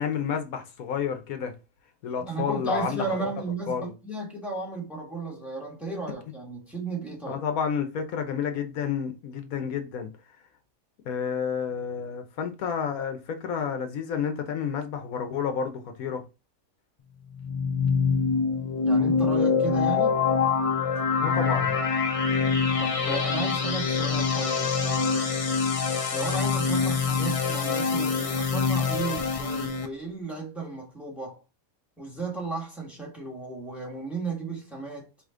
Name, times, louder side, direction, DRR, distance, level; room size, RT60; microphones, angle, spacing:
voice 1, 0.0-1.5 2.0-3.1 3.7-3.9 7.3-10.1 11.1-16.2 21.2-21.8, left 7 dB, 85° left, 1.2 m, -30 dB
voice 2, 2.2-7.4 18.8-20.2 22.8-25.4 26.1-31.4 32.0-35.1, right 3 dB, ahead, 1.4 m, -34 dB
sound 1, 17.3-29.9, left 5 dB, 45° left, 0.4 m, -25 dB
5.0 x 2.9 x 3.7 m
omnidirectional pair, 1.5 m